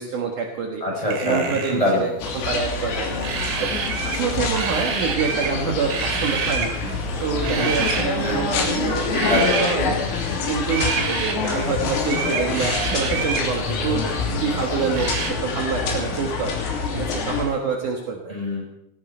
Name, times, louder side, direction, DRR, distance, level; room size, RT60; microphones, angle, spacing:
voice 1, 0.0-0.8 1.2-3.1 3.6-3.7 4.0-10.0 10.5-16.5 16.9-18.3, right 5 dB, 70° right, 1 dB, 1.9 m, -26 dB
voice 2, 0.8-2.1 7.6-8.5 9.2-9.6 18.3-18.6, left 1 dB, 5° left, -3 dB, 7.0 m, -24 dB
sound 1, 1.1-1.8 3.2-4.3 4.5-5.6 5.9-6.7 7.4-8.1 9.1-9.8 10.7-11.4 12.1-13.5 15.0-15.3, right 5 dB, 85° right, 5.1 m, -27 dB
sound 2, 2.2-17.4, left 4 dB, 90° left, 5.9 m, -26 dB
19.0 x 17.0 x 4.5 m, 0.81 s
omnidirectional pair, 6.0 m